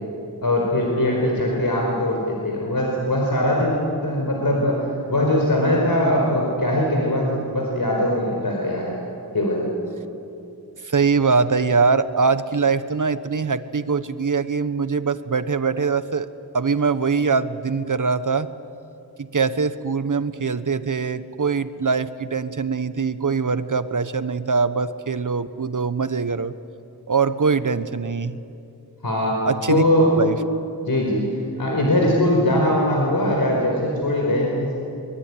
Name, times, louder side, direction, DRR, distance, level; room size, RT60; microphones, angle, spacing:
voice 1, 0.4-9.0 9.3-9.7 29.0-29.4 29.7-30.2 30.9-31.2 31.6-34.7, left 1 dB, 65° left, -1 dB, 4.8 m, -21 dB
voice 2, 10.8-16.3 16.5-18.5 19.2-26.5 27.1-28.4 29.4-29.8 30.1-30.4, right 5 dB, 55° right, 12 dB, 1.1 m, -22 dB
24.0 x 23.0 x 9.8 m, 2.7 s
wide cardioid pair, 80°, 38 cm